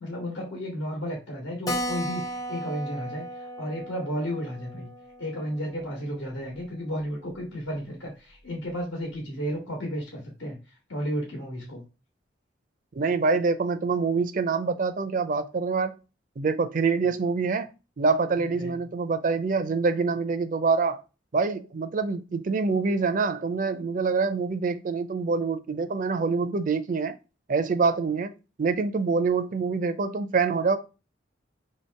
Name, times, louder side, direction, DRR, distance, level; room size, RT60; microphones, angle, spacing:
voice 1, 0.0-4.9 5.2-11.8 17.0-17.1 18.5-18.7, equal, 85° left, 1.2 m, -33 dB
Keyboard (musical), 1.7-6.7 7.0-7.1 7.4-7.5 7.7-7.8 8.4-8.7, equal, 20° left, 0.5 m, -36 dB
voice 2, 12.9-16.0 16.4-17.7 18.0-21.0 21.3-27.1 27.5-28.3 28.6-30.8, right 4 dB, 45° right, 0.4 m, -25 dB
3.1 x 2.9 x 4.4 m
head